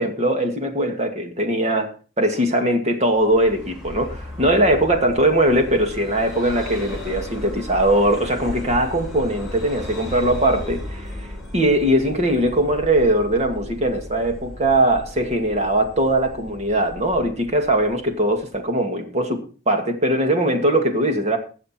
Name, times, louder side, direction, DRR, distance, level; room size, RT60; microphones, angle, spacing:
voice 1, 0.0-1.9 2.2-11.3 11.5-21.4, right 1 dB, 35° right, 5 dB, 2.2 m, -20 dB
Vehicle, 3.1-18.6, left 1 dB, ahead, 7.0 m, -35 dB
20.0 x 7.4 x 4.4 m, 0.37 s
head